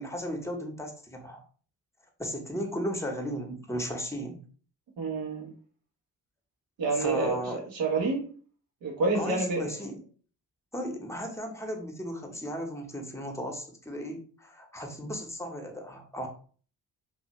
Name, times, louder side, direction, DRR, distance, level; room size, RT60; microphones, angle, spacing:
voice 1, 0.0-1.4 2.2-4.4 6.9-7.6 9.1-10.0 10.7-16.3, equal, 5° left, 3 dB, 0.9 m, -35 dB
voice 2, 5.0-5.5 6.8-8.2 8.8-9.7, right 3 dB, 75° right, 0 dB, 1.1 m, -28 dB
2.7 x 2.6 x 3.0 m, 0.42 s
hypercardioid pair, 40°, 45 cm